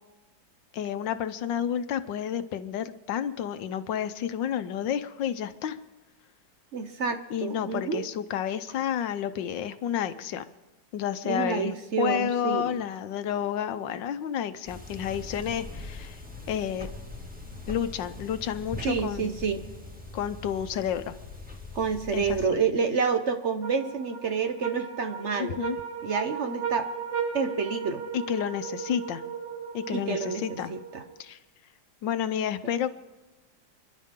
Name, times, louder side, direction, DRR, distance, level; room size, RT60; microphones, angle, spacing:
voice 1, 0.7-5.8 7.3-10.4 10.9-16.2 16.5-16.9 17.7-19.3 20.1-21.2 22.1-22.6 25.4-25.8 28.1-29.2 29.7-30.8 31.2-31.4 32.0-32.9, left 9 dB, 80° left, 11 dB, 1.5 m, -30 dB
voice 2, 6.7-8.0 11.2-12.7 18.8-19.7 21.7-25.6 26.0-26.9 27.3-28.0 29.9-31.0, right 5 dB, 50° right, 7 dB, 1.0 m, -28 dB
sound 1, 14.6-22.5, left 2 dB, 5° right, 1.9 m, -41 dB
sound 2, 23.6-31.2, right 6 dB, 85° right, 3.5 m, -36 dB
28.0 x 11.5 x 3.7 m, 1.1 s
omnidirectional pair, 2.0 m